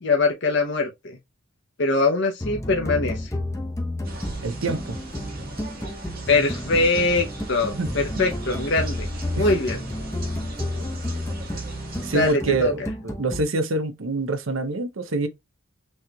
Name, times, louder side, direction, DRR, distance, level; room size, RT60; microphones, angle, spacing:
voice 1, 0.0-1.2 1.8-3.3 6.3-9.1 9.4-9.8 12.1-12.7, left 3 dB, 55° left, 0.7 m, -22 dB
sound 1, 2.4-13.4, left 1 dB, 15° left, 0.7 m, -31 dB
sound 2, 4.0-12.3, right 2 dB, 45° right, 1.3 m, -39 dB
voice 2, 4.4-5.0 7.7-8.2 9.4-9.5 12.0-15.3, right 2 dB, 65° right, 0.7 m, -26 dB
6.2 x 3.1 x 2.3 m
head